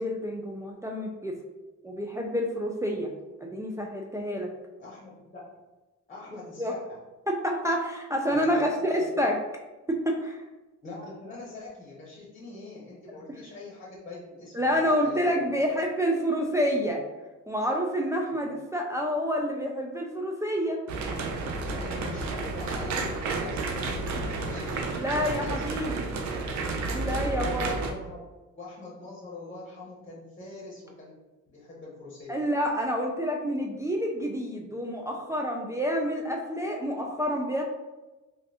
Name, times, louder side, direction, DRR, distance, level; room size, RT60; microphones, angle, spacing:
voice 1, 0.0-1.4 1.8-3.1 3.5-4.5 6.6-6.7 7.3-9.4 9.9-10.4 14.5-17.0 17.5-20.8 24.9-26.1 26.9-27.8 32.3-37.6, equal, 10° right, 0 dB, 0.3 m, -28 dB
voice 2, 4.8-5.4 6.1-7.0 8.3-9.0 10.8-15.7 18.3-18.4 21.7-25.9 26.3-26.6 27.3-28.2 28.5-31.1 31.5-32.4, left 3 dB, 25° left, -5 dB, 1.0 m, -44 dB
sound 1, 20.9-27.9, right 3 dB, 70° right, 0.6 m, -31 dB
3.0 x 2.7 x 2.7 m, 1.1 s
cardioid pair, 90°, 30 cm